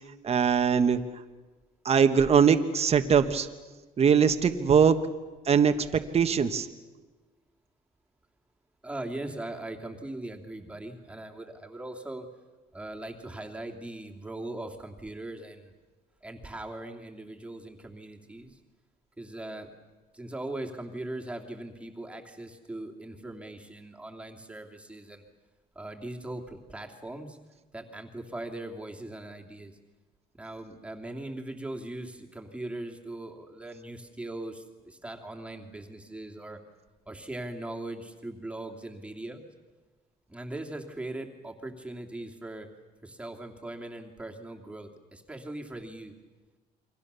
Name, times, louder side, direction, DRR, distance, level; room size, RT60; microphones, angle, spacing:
voice 1, 0.2-1.0 1.8-3.5 4.0-5.0 5.4-5.7 6.1-6.7, right 7 dB, 35° right, 7 dB, 1.4 m, -21 dB
voice 2, 8.8-12.3 12.7-15.7 16.2-18.6 19.2-19.7 20.1-25.2 25.7-27.4 27.7-29.8 30.4-36.6 37.1-39.4 40.3-42.7 43.0-46.1, right 1 dB, 5° right, 1 dB, 2.8 m, -40 dB
29.0 x 23.5 x 6.9 m, 1.3 s
cardioid pair, 110°, 17 cm